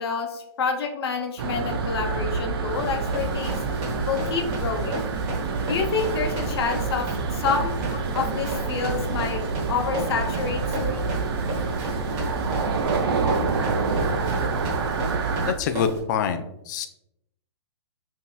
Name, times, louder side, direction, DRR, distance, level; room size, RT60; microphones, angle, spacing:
voice 1, 0.0-3.6 4.1-5.0 5.7-7.1 7.3-7.8 8.1-9.4 9.7-11.0, left 5 dB, 60° left, 3 dB, 0.8 m, -28 dB
sound 1, 1.4-15.5, right 4 dB, 55° right, 0.5 m, -27 dB
Run, 2.7-16.0, right 1 dB, 35° right, 1.1 m, -35 dB
voice 2, 15.5-16.9, left 7 dB, 40° left, 9 dB, 0.4 m, -26 dB
5.2 x 2.8 x 2.3 m, 0.83 s
hypercardioid pair, 140°, 15 cm